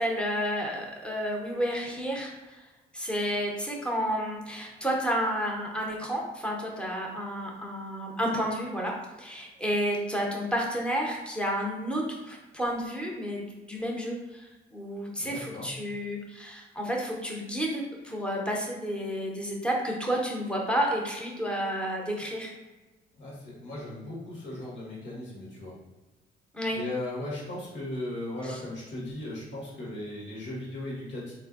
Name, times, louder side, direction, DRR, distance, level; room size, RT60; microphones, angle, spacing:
voice 1, 0.0-2.7 2.9-8.9 9.2-22.5 26.5-26.8 28.4-28.6, equal, 5° left, -1 dB, 0.8 m, -31 dB
voice 2, 15.2-15.7 23.1-25.8 26.7-31.3, left 1 dB, 65° left, -5 dB, 1.3 m, -37 dB
3.7 x 2.6 x 2.4 m, 1.2 s
cardioid pair, 90°, 20 cm